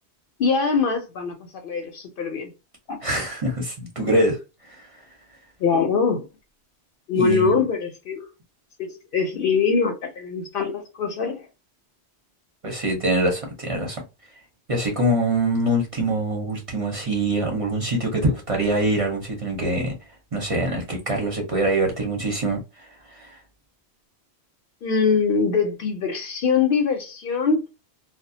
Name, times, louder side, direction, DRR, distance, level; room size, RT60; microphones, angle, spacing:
voice 1, 0.4-1.4 1.6-2.5 5.6-6.2 7.1-8.3 8.8-11.4 24.8-27.7, left 5 dB, 60° left, 0.7 m, -23 dB
voice 2, 3.0-4.9 7.1-7.6 12.6-14.0 14.7-19.9 20.3-23.4, right 1 dB, 35° right, 0.6 m, -24 dB
2.3 x 2.1 x 2.6 m
omnidirectional pair, 1.1 m